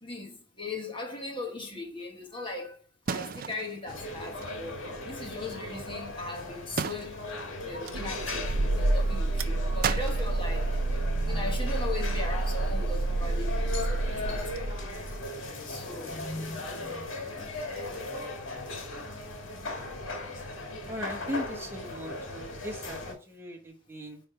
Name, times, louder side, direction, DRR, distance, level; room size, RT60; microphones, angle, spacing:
voice 1, 0.0-2.8 3.1-7.4 7.6-17.1, left 2 dB, 25° left, 1.4 m, -39 dB
sound 1, 3.1-4.5 5.9-6.3 6.8-7.6 9.8-11.1 11.5-12.2 13.0-13.3, right 6 dB, 45° right, 0.3 m, -36 dB
sound 2, 3.9-23.1, left 2 dB, 70° left, 1.9 m, -38 dB
sound 3, 7.9-15.2, right 2 dB, 85° right, 0.6 m, -29 dB
voice 2, 19.4-19.8 20.9-24.2, equal, 10° right, 1.2 m, -39 dB
9.4 x 3.4 x 4.9 m
head